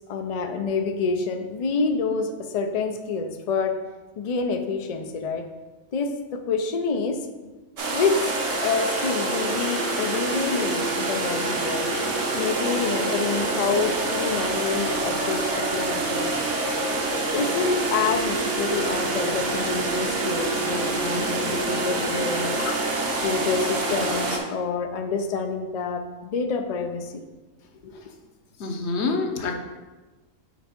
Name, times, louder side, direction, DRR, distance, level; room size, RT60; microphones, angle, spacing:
voice 1, 0.1-3.7 4.2-5.4 5.9-7.2 7.9-11.9 12.3-16.4 17.3-22.8 23.2-27.2 27.8-27.9, left 4 dB, 80° left, 6 dB, 0.3 m, -27 dB
sound 1, 7.8-24.4, right 2 dB, 65° right, 1.3 m, -26 dB
voice 2, 28.6-29.5, left 4 dB, 60° left, 4 dB, 1.0 m, -27 dB
4.9 x 4.4 x 5.2 m, 1.2 s
omnidirectional pair, 1.4 m